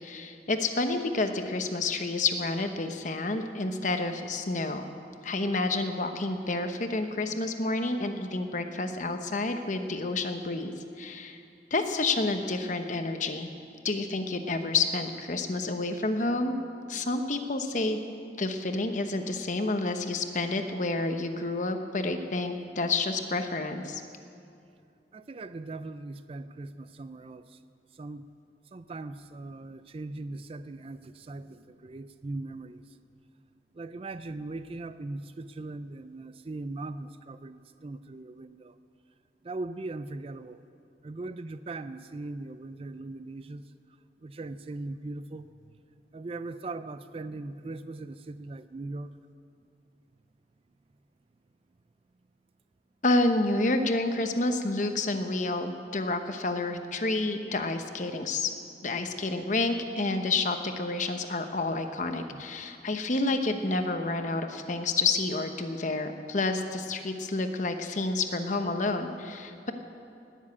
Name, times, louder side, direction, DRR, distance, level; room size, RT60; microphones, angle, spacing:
voice 1, 0.0-4.9 5.2-11.4 11.7-13.5 13.8-16.5 16.9-18.0 18.4-24.0 53.0-58.5 58.8-69.7, left 2 dB, 45° left, 7 dB, 1.0 m, -29 dB
voice 2, 25.1-27.6 27.9-28.3 28.7-33.0 33.7-38.8 39.4-40.6 41.0-43.7 44.2-45.5 46.1-49.1 62.3-62.4, right 2 dB, 35° right, 12 dB, 0.4 m, -39 dB
19.0 x 7.3 x 8.5 m, 2.6 s
head